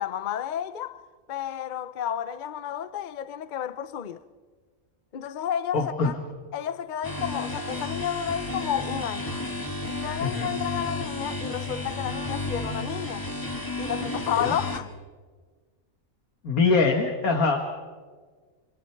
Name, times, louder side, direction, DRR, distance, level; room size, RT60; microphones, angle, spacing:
voice 1, 0.0-4.2 5.1-6.1 6.5-9.3 9.9-13.3 13.8-14.9, left 9 dB, 45° left, 0.7 m, -31 dB
voice 2, 5.7-6.1 10.2-10.5 14.4-14.5 16.4-17.6, left 4 dB, 85° left, 2.2 m, -23 dB
sound 1, 7.0-14.8, left 2 dB, 15° left, 2.2 m, -32 dB
29.0 x 27.5 x 4.7 m
omnidirectional pair, 1.5 m